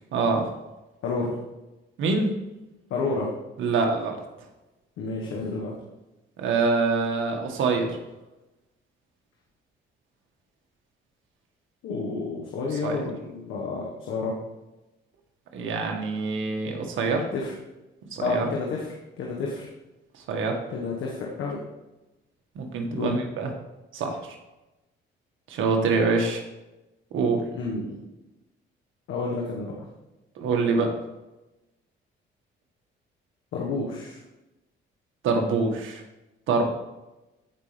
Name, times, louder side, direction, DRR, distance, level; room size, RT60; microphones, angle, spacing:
voice 1, 0.1-0.5 2.0-2.3 3.6-4.2 6.4-8.0 12.8-13.0 15.5-17.3 18.1-18.5 20.2-20.6 22.5-23.5 23.9-24.2 25.5-26.4 27.1-27.4 30.3-30.9 35.2-36.0 36.5-36.6, right 4 dB, 80° right, 2 dB, 1.7 m, -25 dB
voice 2, 1.0-1.4 2.9-3.3 5.0-5.7 11.8-14.4 17.3-17.5 18.2-18.9 19.2-19.6 20.7-21.6 22.9-23.2 27.5-28.0 29.1-29.9 33.5-34.2, left 3 dB, 85° left, -2 dB, 1.5 m, -30 dB
15.0 x 5.5 x 3.4 m, 1.0 s
cardioid pair, 90°, 20 cm